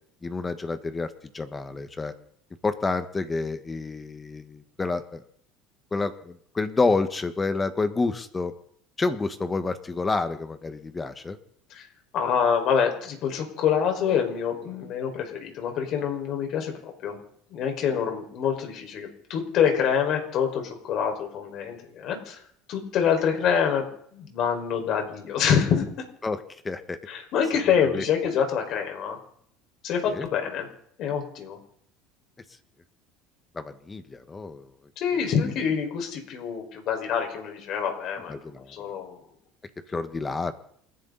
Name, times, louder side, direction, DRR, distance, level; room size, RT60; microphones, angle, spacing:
voice 1, 0.2-2.1 2.6-5.2 5.9-8.5 9.0-11.4 26.2-27.0 27.7-28.0 30.0-30.3 33.5-34.7 38.3-38.7 39.9-40.6, left 3 dB, 20° left, 10 dB, 1.5 m, -29 dB
voice 2, 12.1-17.2 17.5-22.4 22.7-25.8 27.1-29.2 29.8-30.7 31.0-31.6 35.0-38.3 38.7-39.2, left 7 dB, 55° left, 3 dB, 5.2 m, -26 dB
28.5 x 11.0 x 4.1 m, 0.65 s
supercardioid pair, 110°, 0 cm